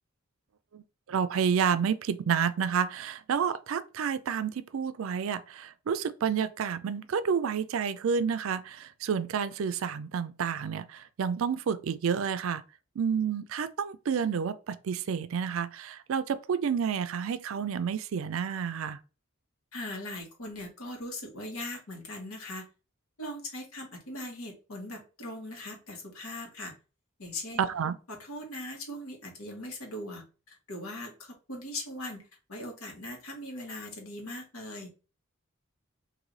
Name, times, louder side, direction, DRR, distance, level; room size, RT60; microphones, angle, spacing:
voice 1, 1.1-12.6 13.0-19.0 27.6-28.0, right 7 dB, 65° right, 0.4 m, -30 dB
voice 2, 19.7-22.7 23.2-26.7 27.2-27.6 28.1-34.9, left 1 dB, 85° left, 1.3 m, -40 dB
3.2 x 2.6 x 3.8 m
head